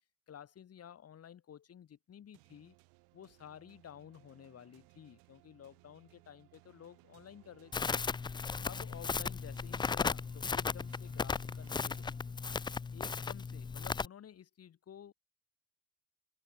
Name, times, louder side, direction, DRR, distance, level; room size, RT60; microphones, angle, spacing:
voice 1, 0.3-2.8 3.1-7.9 8.6-12.2 12.9-15.1, left 9 dB, 40° left, 3.2 m, -53 dB
sound 1, 2.3-12.9, right 29 dB, 80° right, 6.0 m, -63 dB
Crackle, 7.7-14.0, left 5 dB, 15° left, 0.4 m, -36 dB
supercardioid pair, 100°, 36 cm